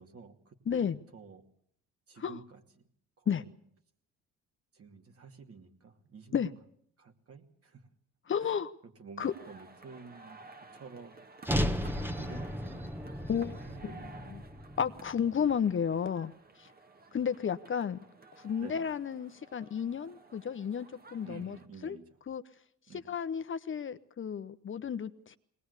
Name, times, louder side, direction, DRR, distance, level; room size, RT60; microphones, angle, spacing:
voice 1, 0.0-1.4 2.1-2.8 3.2-3.6 4.7-6.5 7.0-7.9 8.4-8.6 9.0-14.1 18.6-18.8 21.2-22.1 22.9-23.1, right 5 dB, 50° right, 2.6 m, -51 dB
voice 2, 0.7-1.0 2.2-2.4 3.3-3.4 6.3-6.5 8.3-8.7 9.2-9.3 13.3-13.9 14.3-14.4 14.8-16.3 16.6-16.7 17.1-18.0 18.4-21.6 21.8-22.0 22.3-22.4 23.1-25.4, left 7 dB, 40° left, 0.9 m, -32 dB
sound 1, 9.2-21.7, right 3 dB, 30° right, 1.7 m, -54 dB
sound 2, 11.4-15.7, equal, 5° right, 1.4 m, -35 dB
21.0 x 19.5 x 8.2 m
cardioid pair, 90°, 30 cm